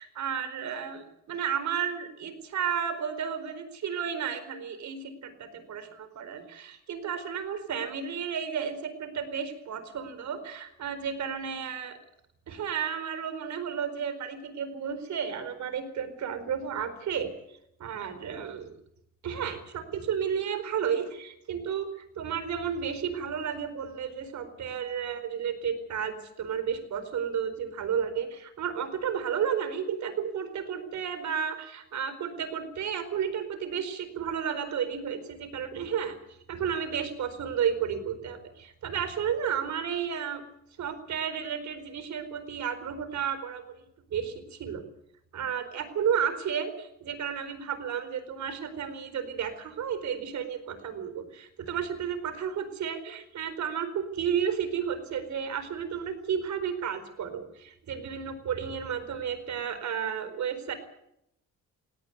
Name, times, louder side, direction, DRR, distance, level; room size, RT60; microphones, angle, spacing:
voice 1, 0.0-12.0 12.5-17.3 17.8-18.7 19.2-21.9 22.2-36.1 36.5-40.4 40.8-43.8 44.1-44.9 45.3-60.7, right 7 dB, 70° right, 11 dB, 4.5 m, -32 dB
18.0 x 18.0 x 9.5 m, 0.77 s
cardioid pair, 90°, 30 cm